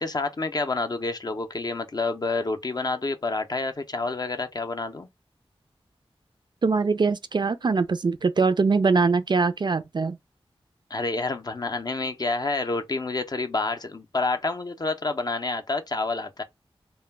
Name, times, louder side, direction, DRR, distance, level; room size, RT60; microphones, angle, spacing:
voice 1, 0.0-5.1 10.9-16.4, left 3 dB, 40° left, 0.5 m, -28 dB
voice 2, 6.6-10.2, right 4 dB, 50° right, 0.3 m, -22 dB
2.1 x 2.1 x 3.3 m
wide cardioid pair, 55°, 10 cm